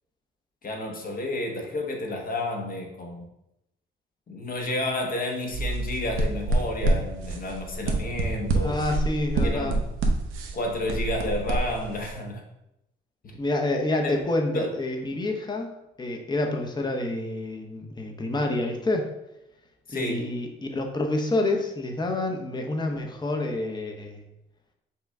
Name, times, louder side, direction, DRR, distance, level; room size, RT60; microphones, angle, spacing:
voice 1, 0.6-3.2 4.3-8.8 9.4-9.8 10.5-12.4 13.2-13.3 14.0-14.2 14.5-14.7 19.9-20.2, left 1 dB, 45° left, 1 dB, 0.9 m, -31 dB
sound 1, 5.5-12.1, right 2 dB, 90° right, 0.7 m, -27 dB
voice 2, 8.6-9.8 13.4-15.7 16.0-19.1 19.9-24.2, left 2 dB, 20° left, 2 dB, 0.7 m, -28 dB
5.6 x 2.2 x 3.6 m, 0.86 s
cardioid pair, 90°, 20 cm